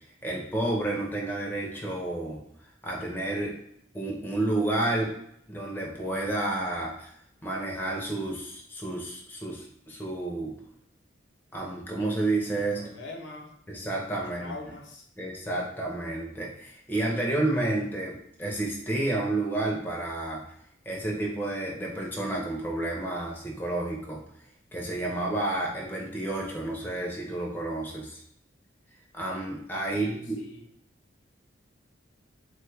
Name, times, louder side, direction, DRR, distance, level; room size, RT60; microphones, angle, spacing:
voice 1, 0.2-2.4 2.8-3.5 3.9-5.1 5.5-7.1 7.4-10.5 11.5-12.8 13.7-14.5 15.2-20.4 20.9-24.2 24.7-28.2 29.1-30.4, right 2 dB, 10° left, -2 dB, 0.4 m, -30 dB
voice 2, 12.7-13.5 14.2-15.1 29.9-30.7, left 2 dB, 70° left, 1 dB, 0.6 m, -42 dB
3.1 x 2.2 x 3.2 m, 0.72 s
head